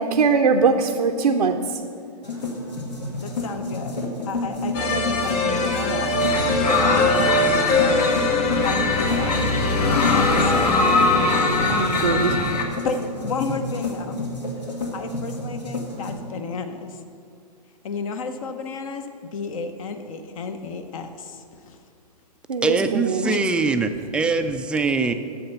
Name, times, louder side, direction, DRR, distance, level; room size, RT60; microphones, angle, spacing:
voice 1, 0.0-1.8 11.7-12.4 22.5-23.4, right 5 dB, 90° right, 2 dB, 0.7 m, -21 dB
sound 1, 2.2-16.1, left 1 dB, 90° left, 2.0 m, -30 dB
voice 2, 3.2-6.3 6.8-7.1 7.7-8.1 8.6-10.8 12.8-14.2 14.9-17.0 17.8-21.8 23.2-23.4, left 5 dB, 55° left, 8 dB, 0.8 m, -32 dB
sound 2, 4.7-11.9, left 2 dB, 30° left, 1.0 m, -24 dB
sound 3, 6.2-12.6, left 3 dB, 70° left, 1.7 m, -22 dB
voice 3, 22.6-25.1, right 4 dB, 5° right, 7 dB, 0.3 m, -22 dB
8.8 x 7.1 x 6.9 m, 2.4 s
hypercardioid pair, 120°, 21 cm